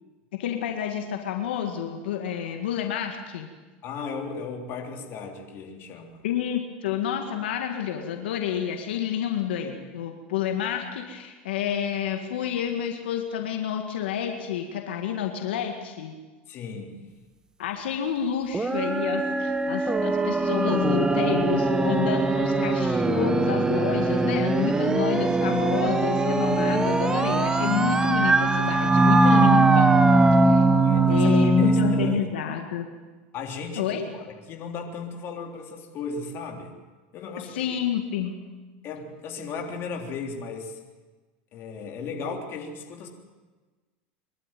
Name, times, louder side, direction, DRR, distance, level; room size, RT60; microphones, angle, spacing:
voice 1, 0.3-3.5 6.2-16.1 17.6-29.9 30.3-30.6 31.1-32.9 33.8-34.1 37.4-38.4, left 9 dB, 90° left, 4 dB, 1.9 m, -29 dB
voice 2, 3.8-6.2 16.5-17.0 30.7-32.3 33.3-33.8 34.1-36.8 37.1-37.6 38.8-40.8 41.5-43.1, left 4 dB, 45° left, 2 dB, 3.4 m, -36 dB
sound 1, 18.5-32.2, right 2 dB, 10° right, 1.1 m, -21 dB
23.0 x 12.5 x 9.2 m, 1.3 s
supercardioid pair, 120°, 6 cm